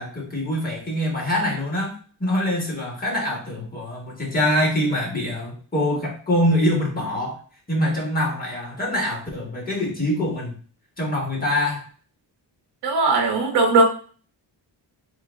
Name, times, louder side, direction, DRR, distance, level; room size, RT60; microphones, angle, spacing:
voice 1, 0.0-7.4 7.7-10.5 11.0-11.8, left 1 dB, 20° left, -2 dB, 1.4 m, -24 dB
voice 2, 12.8-13.8, right 3 dB, 60° right, 3 dB, 0.8 m, -18 dB
3.8 x 2.0 x 3.4 m, 0.40 s
cardioid pair, 110°, 44 cm